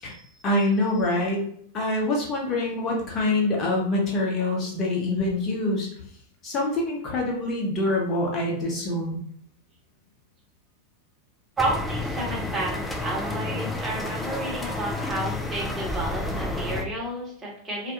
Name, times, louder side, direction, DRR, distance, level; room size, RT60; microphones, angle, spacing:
voice 1, 0.4-1.4 1.7-5.9 6.4-9.2, left 2 dB, 30° left, -1 dB, 0.9 m, -25 dB
sound 1, 11.6-16.8, left 2 dB, 5° left, 0.3 m, -30 dB
voice 2, 11.6-17.9, right 1 dB, 15° right, -5 dB, 1.1 m, -31 dB
2.4 x 2.2 x 2.9 m, 0.64 s
figure-of-eight pair, 90°, 0 cm